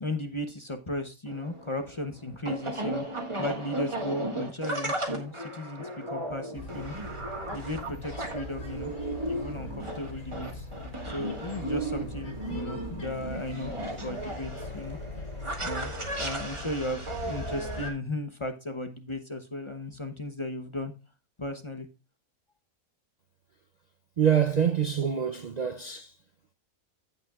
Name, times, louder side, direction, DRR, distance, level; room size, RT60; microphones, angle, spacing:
voice 1, 0.0-6.9 7.5-8.9 9.2-10.7 11.0-15.0 15.6-20.9 21.4-21.9, left 1 dB, 30° left, 0.6 m, -36 dB
sound 1, 1.3-17.9, right 1 dB, 20° right, 1.6 m, -35 dB
sound 2, 6.5-17.9, left 2 dB, 70° left, 3.5 m, -41 dB
voice 2, 24.2-26.2, right 8 dB, 85° right, 0.3 m, -25 dB
16.0 x 5.7 x 2.3 m
omnidirectional pair, 1.5 m